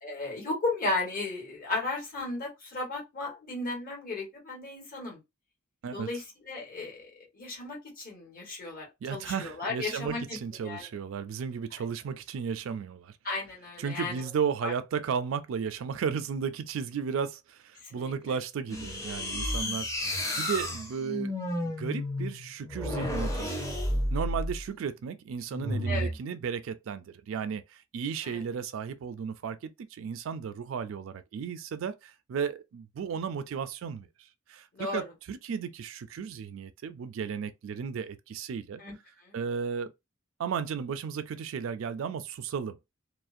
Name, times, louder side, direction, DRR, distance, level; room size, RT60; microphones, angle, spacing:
voice 1, 0.0-5.2 5.9-7.1 7.3-10.9 13.2-14.1 14.6-14.7 17.8-18.3 25.8-26.1 28.2-28.4 34.7-35.0 38.8-38.9 39.2-39.4, left 2 dB, 45° left, 1.3 m, -35 dB
voice 2, 9.0-13.1 13.8-21.3 21.6-23.7 24.1-34.1 34.5-38.8 39.3-39.9 40.4-42.8, right 6 dB, 70° right, 0.3 m, -34 dB
sound 1, 18.7-24.6 25.5-26.2, left 1 dB, 15° left, 0.6 m, -32 dB
2.4 x 2.0 x 2.5 m
head